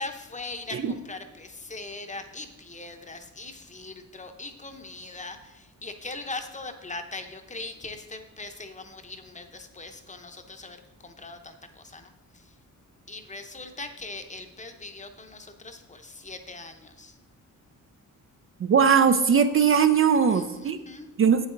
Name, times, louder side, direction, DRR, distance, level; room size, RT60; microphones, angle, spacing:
voice 1, 0.0-12.6 13.1-17.2 20.3-21.1, left 3 dB, 20° left, 6 dB, 0.8 m, -40 dB
voice 2, 18.6-20.8 21.2-21.5, right 7 dB, 40° right, 9 dB, 0.4 m, -20 dB
8.2 x 8.1 x 3.8 m, 1.1 s
cardioid pair, 110°, 33 cm